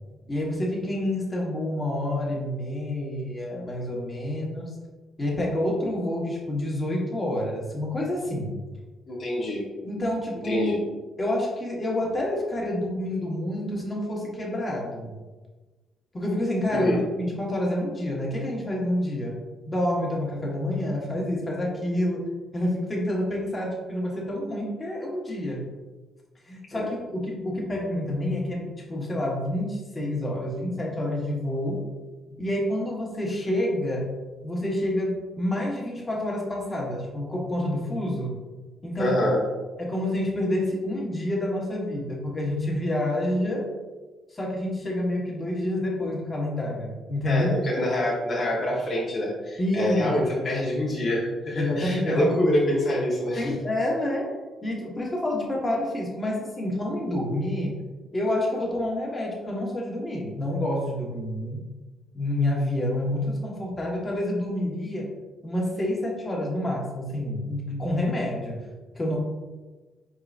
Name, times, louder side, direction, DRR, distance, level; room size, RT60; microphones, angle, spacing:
voice 1, 0.3-4.7 5.2-8.5 9.8-10.7 11.2-15.1 16.1-19.3 19.7-22.2 22.5-25.6 26.5-31.8 32.4-34.0 34.4-38.3 38.8-39.2 39.8-43.7 44.3-47.6 49.6-50.1 50.4-50.5 51.6-52.4 53.4-54.3 54.6-57.8 58.1-61.6 62.1-65.1 65.4-68.6 68.9-69.2, left 1 dB, 25° left, -3 dB, 1.3 m, -28 dB
voice 2, 9.1-9.7 10.4-10.8 16.7-17.0 26.7-26.9 39.0-39.4 47.3-53.5, left 1 dB, 45° left, -5 dB, 1.0 m, -26 dB
4.7 x 3.8 x 2.5 m, 1.2 s
cardioid pair, 90°, 0 cm